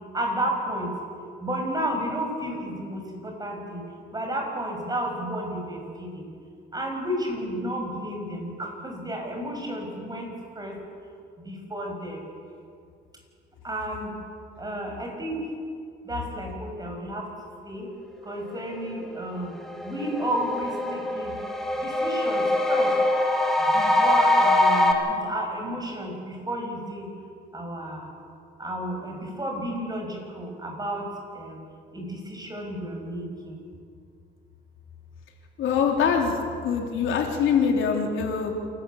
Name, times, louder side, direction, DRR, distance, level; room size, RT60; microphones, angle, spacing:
voice 1, 0.1-0.9 1.4-3.8 4.1-6.2 6.7-10.3 10.6-10.8 11.4-12.2 13.6-14.1 14.6-15.4 16.1-17.2 17.7-17.9 18.2-19.5 19.8-21.4 21.8-22.9 23.7-27.1 27.5-28.0 28.6-31.1 31.4-31.6 31.9-33.5, right 1 dB, 20° right, 2 dB, 6.4 m, -32 dB
sound 1, 19.1-19.2 19.6-24.9, left 1 dB, ahead, 3.0 m, -23 dB
voice 2, 35.6-36.4 36.6-38.5, left 6 dB, 80° left, 2 dB, 3.5 m, -23 dB
28.0 x 13.0 x 8.5 m, 2.3 s
cardioid pair, 90°, 20 cm